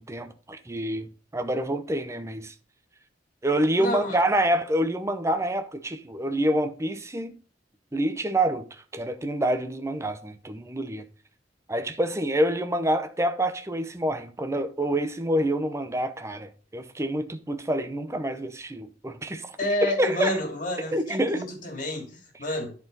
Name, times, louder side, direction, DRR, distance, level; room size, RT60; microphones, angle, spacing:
voice 1, 0.0-2.5 3.4-7.4 7.9-8.7 8.9-11.1 11.7-19.6 19.8-20.3 20.9-21.4, right 1 dB, 15° right, 0.7 m, -27 dB
voice 2, 3.8-4.2 19.6-22.7, left 1 dB, 45° left, 2.8 m, -29 dB
10.5 x 4.6 x 4.0 m
head